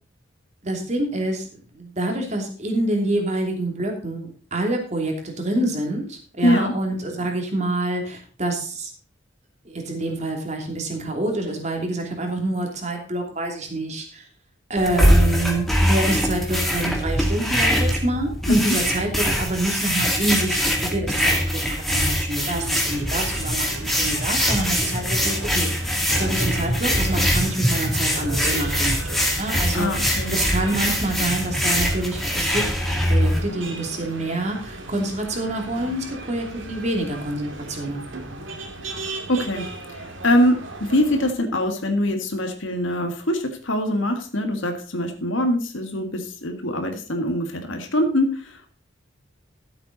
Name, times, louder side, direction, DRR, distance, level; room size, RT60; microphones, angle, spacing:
voice 1, 0.6-1.5 1.7-8.9 9.6-14.3 14.7-20.6 20.9-25.7 26.1-32.6 33.1-38.5, right 2 dB, 35° right, 3 dB, 2.9 m, -27 dB
voice 2, 6.4-6.7 18.5-18.8 29.7-30.4 39.3-48.7, left 1 dB, 80° left, 5 dB, 1.8 m, -23 dB
sound 1, 14.8-33.4, equal, ahead, 2.3 m, -22 dB
sound 2, 22.5-41.3, right 2 dB, 80° right, 2.5 m, -37 dB
14.0 x 8.0 x 4.0 m, 0.40 s
head